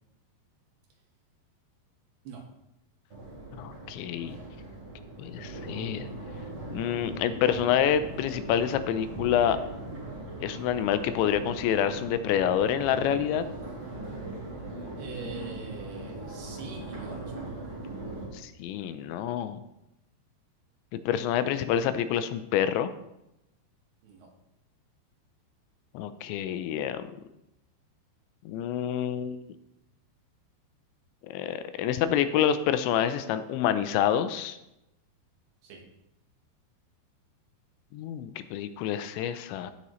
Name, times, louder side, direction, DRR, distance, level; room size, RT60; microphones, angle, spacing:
Crowd, 3.1-18.2, right 2 dB, 30° right, 4.4 m, -39 dB
voice 1, 3.6-4.4 5.2-6.1 6.7-9.6 10.4-13.4 18.4-19.6 20.9-22.9 25.9-27.1 28.5-29.5 31.3-34.6 37.9-39.7, left 9 dB, 85° left, 12 dB, 2.9 m, -27 dB
voice 2, 15.0-17.6 24.0-24.3 35.6-35.8, right 4 dB, 65° right, 0 dB, 3.4 m, -43 dB
16.5 x 7.0 x 3.1 m, 0.88 s
omnidirectional pair, 5.2 m